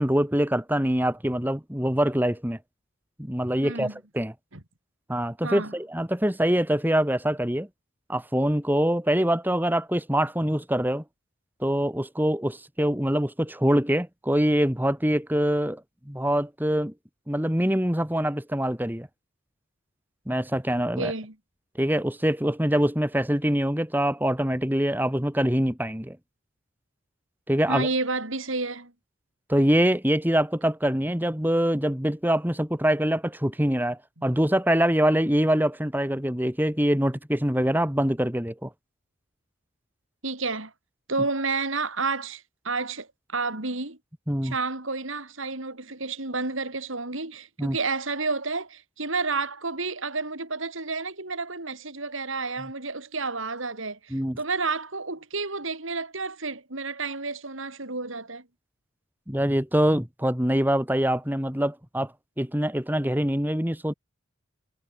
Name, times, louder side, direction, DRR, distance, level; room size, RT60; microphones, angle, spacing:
voice 1, 0.0-2.6 3.2-4.3 5.1-7.7 8.1-11.0 11.6-16.9 17.3-19.1 20.3-21.1 21.8-26.2 27.5-27.9 29.5-38.7 44.3-44.5 47.6-47.8 54.1-54.4 59.3-62.1 62.4-63.9, equal, 10° right, 2.3 m, -24 dB
voice 2, 3.6-3.9 4.5-4.6 5.4-5.7 21.0-21.3 27.7-28.9 34.2-34.3 40.2-40.7 41.1-44.0 44.4-58.4, right 3 dB, 70° right, 3.7 m, -30 dB
head